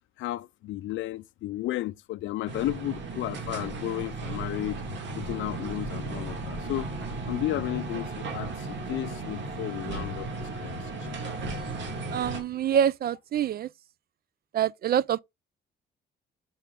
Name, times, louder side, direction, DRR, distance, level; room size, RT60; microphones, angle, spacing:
voice 1, 0.2-4.8 5.2-11.1, left 16 dB, 75° left, 0.4 m, -33 dB
sound 1, 2.5-12.4, right 2 dB, 65° right, 2.3 m, -35 dB
voice 2, 12.1-13.7 14.5-15.2, right 9 dB, 50° right, 0.4 m, -26 dB
5.6 x 4.9 x 3.6 m
cardioid pair, 90°, 20 cm